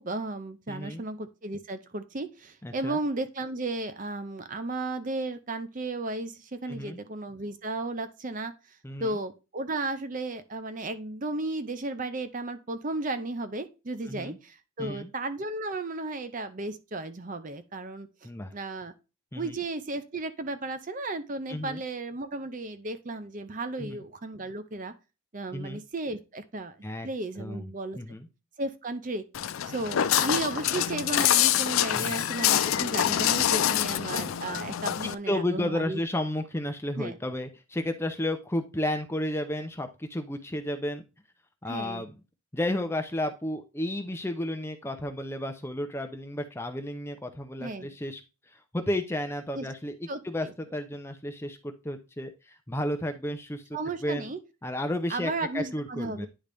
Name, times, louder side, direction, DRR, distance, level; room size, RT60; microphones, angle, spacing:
voice 1, 0.0-18.9 19.3-24.9 25.3-26.8 27.0-28.2 28.6-29.2 29.6-36.0 37.0-37.2 41.7-42.0 47.6-47.9 49.5-49.7 50.1-50.5 53.7-54.4 55.1-56.3, right 2 dB, 40° right, 10 dB, 0.6 m, -34 dB
voice 2, 0.7-1.0 2.6-3.0 6.7-7.0 8.8-9.2 14.0-14.4 14.8-15.1 18.2-18.5 19.3-19.6 21.5-21.8 23.8-24.0 25.5-25.8 26.8-27.1 27.4-27.7 28.0-28.3 31.9-32.2 35.0-41.0 41.6-42.2 42.5-48.2 48.7-50.5 50.7-52.3 52.7-53.6 54.0-54.3 54.6-56.3, left 1 dB, 10° left, 6 dB, 0.6 m, -32 dB
Walk footsteps, 29.3-35.1, left 11 dB, 70° left, 0.4 m, -26 dB
10.0 x 3.9 x 3.4 m, 0.29 s
head